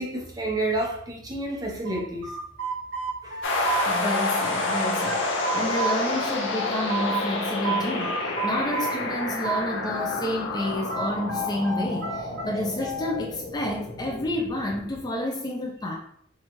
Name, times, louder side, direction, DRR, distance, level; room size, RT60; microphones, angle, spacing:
voice 1, 0.0-2.3 3.2-3.4, right 2 dB, 20° right, -1 dB, 0.7 m, -29 dB
sound 1, 1.8-4.4 4.7-7.2 7.6-10.2 10.5-13.2, right 3 dB, 65° right, 0.8 m, -31 dB
sound 2, 3.4-15.0, left 2 dB, 70° left, 0.7 m, -29 dB
voice 2, 3.9-15.9, left 1 dB, 20° left, 0 dB, 0.4 m, -30 dB
4.2 x 2.3 x 2.9 m, 0.66 s
head